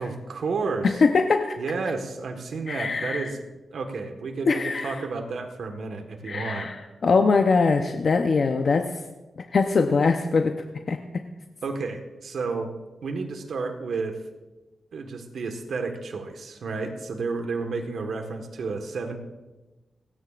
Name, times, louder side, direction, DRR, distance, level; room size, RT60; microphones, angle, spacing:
voice 1, 0.0-1.0 1.6-3.4 3.7-6.7 11.6-12.7 13.0-14.2 14.9-19.2, right 4 dB, 75° right, 4 dB, 1.4 m, -31 dB
voice 2, 0.8-1.6 2.7-3.3 4.4-5.0 6.2-8.9 9.4-10.5 10.9-11.0, left 4 dB, 55° left, 5 dB, 0.7 m, -22 dB
29.5 x 9.9 x 2.5 m, 1.1 s
cardioid pair, 80°, 0 cm